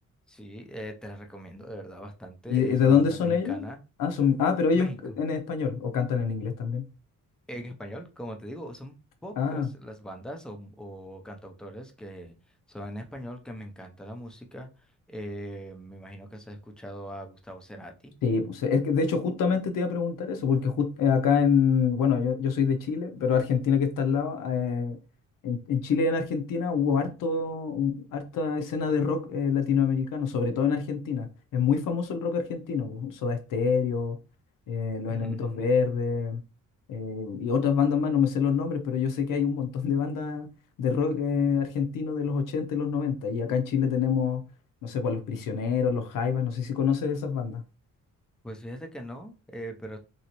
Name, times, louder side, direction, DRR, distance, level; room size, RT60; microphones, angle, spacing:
voice 1, 0.3-3.8 4.7-5.0 7.5-9.0 9.2-12.3 12.7-18.1 35.1-35.6 48.4-50.0, equal, ahead, 0.4 m, -41 dB
voice 2, 2.5-3.6 4.0-4.9 5.2-6.8 9.4-9.7 18.2-25.0 25.4-34.2 34.7-36.4 36.9-40.5 40.8-44.4 44.8-47.6, left 6 dB, 75° left, 0.7 m, -26 dB
3.1 x 2.8 x 2.9 m
wide cardioid pair, 155°, 33 cm